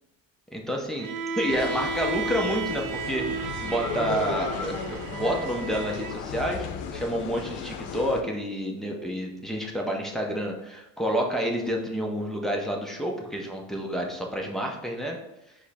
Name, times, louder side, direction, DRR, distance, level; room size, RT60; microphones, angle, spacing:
voice 1, 0.5-1.1 1.4-3.3 3.6-6.7 6.9-15.2, equal, ahead, -1 dB, 0.5 m, -29 dB
Bowed string instrument, 1.0-6.2, right 4 dB, 60° right, 0.5 m, -33 dB
sound 1, 1.5-8.2, left 6 dB, 75° left, 0.6 m, -35 dB
4.8 x 2.1 x 4.1 m, 0.90 s
cardioid pair, 140°, 37 cm